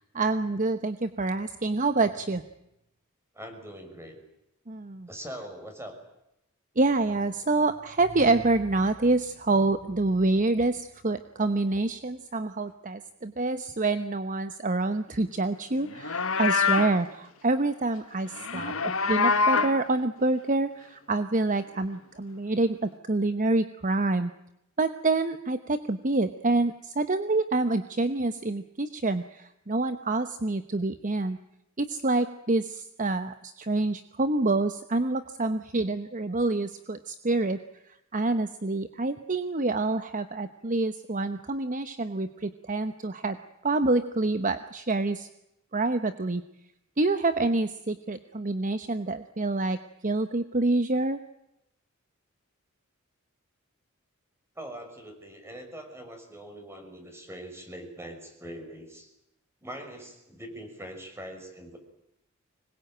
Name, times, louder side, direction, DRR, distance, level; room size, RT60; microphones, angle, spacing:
voice 1, 0.1-2.4 4.7-5.1 6.8-24.3 24.8-31.4 31.8-37.6 38.1-43.4 43.6-45.3 45.7-46.4 47.0-49.8 50.0-51.2, right 2 dB, 40° right, 10 dB, 1.0 m, -27 dB
voice 2, 3.3-4.2 5.1-5.9 18.5-18.9 54.6-59.1 59.6-61.8, equal, 10° right, 5 dB, 6.1 m, -42 dB
Livestock farm animals working animals, 15.9-17.0 18.3-19.8, left 4 dB, 65° left, 1.4 m, -25 dB
25.0 x 21.5 x 9.0 m, 0.86 s
head